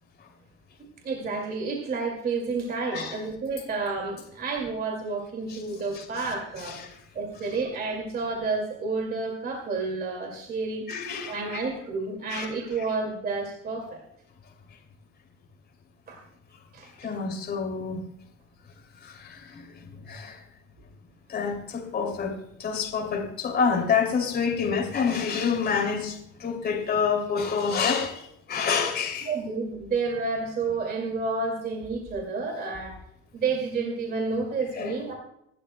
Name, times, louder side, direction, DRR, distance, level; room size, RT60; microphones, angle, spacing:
voice 1, 1.0-6.8 7.1-10.9 11.3-14.0 16.1-16.2 16.7-16.9 29.2-33.0 33.3-35.2, right 4 dB, 35° right, 1 dB, 2.3 m, -30 dB
voice 2, 6.6-7.0 10.9-11.6 12.3-12.5 17.0-18.0 19.0-19.7 19.9-20.4 21.3-29.3 34.8-34.9, left 6 dB, 35° left, 2 dB, 2.8 m, -28 dB
27.0 x 12.0 x 2.2 m, 0.77 s
cardioid pair, 175°, 29 cm